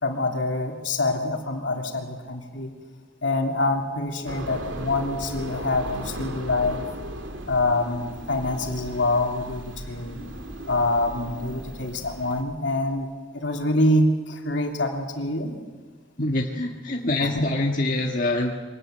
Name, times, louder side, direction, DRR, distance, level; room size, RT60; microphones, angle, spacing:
voice 1, 0.0-2.7 3.2-6.9 7.5-10.2 10.7-13.1 13.3-15.6 17.2-17.4, left 2 dB, 65° left, 3 dB, 3.1 m, -25 dB
sound 1, 4.3-12.4, right 1 dB, 75° right, 2.5 m, -37 dB
voice 2, 16.2-18.5, left 2 dB, 45° left, 0 dB, 1.7 m, -25 dB
24.5 x 18.5 x 9.1 m, 1.4 s
head